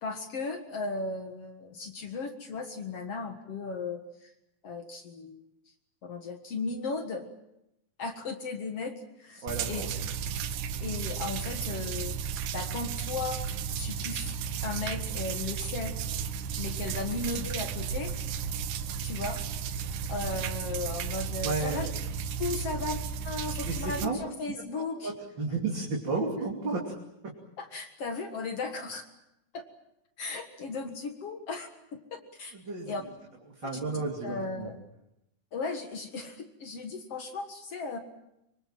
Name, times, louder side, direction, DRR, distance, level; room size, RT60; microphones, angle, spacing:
voice 1, 0.0-4.3 4.6-5.5 6.0-7.3 8.0-9.8 10.8-12.2 12.5-13.4 13.8-14.3 14.6-16.0 16.6-18.1 19.0-19.4 20.1-21.9 22.4-23.0 23.2-25.1 27.6-29.0 29.5-29.6 30.2-31.7 32.1-32.5 32.9-33.0 34.2-34.8 35.5-38.0, left 3 dB, 55° left, 6 dB, 2.5 m, -36 dB
voice 2, 9.4-9.9 21.4-21.9 22.6-22.7 23.6-24.2 25.0-26.9 32.5-32.9 33.5-34.7, right 3 dB, 35° right, 0 dB, 3.4 m, -32 dB
sound 1, 9.5-24.1, right 7 dB, 80° right, 2.5 m, -34 dB
24.5 x 24.0 x 7.5 m, 0.84 s
omnidirectional pair, 3.5 m